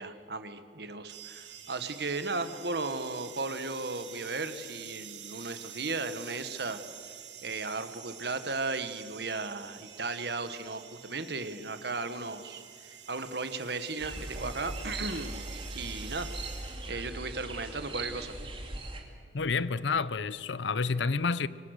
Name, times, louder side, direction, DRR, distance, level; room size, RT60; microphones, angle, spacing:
voice 1, 0.0-6.8 7.4-12.6 13.1-16.3 16.9-18.4, right 3 dB, 60° right, 1.4 m, -35 dB
sound 1, 1.1-17.0, right 9 dB, 80° right, 2.2 m, -48 dB
sound 2, 14.0-19.0, right 2 dB, 30° right, 2.7 m, -39 dB
voice 2, 19.3-21.5, left 4 dB, 75° left, 0.7 m, -29 dB
25.0 x 24.0 x 6.6 m
head